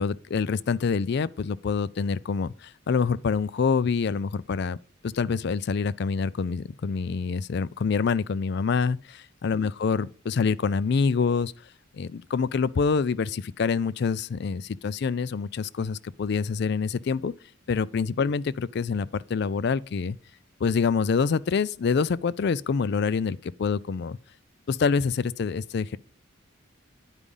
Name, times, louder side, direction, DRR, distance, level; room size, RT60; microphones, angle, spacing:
voice 1, 0.0-4.8 5.0-11.5 12.0-17.3 17.7-20.2 20.6-24.2 24.7-26.0, left 5 dB, 55° left, 0.4 m, -26 dB
9.8 x 5.0 x 5.4 m
head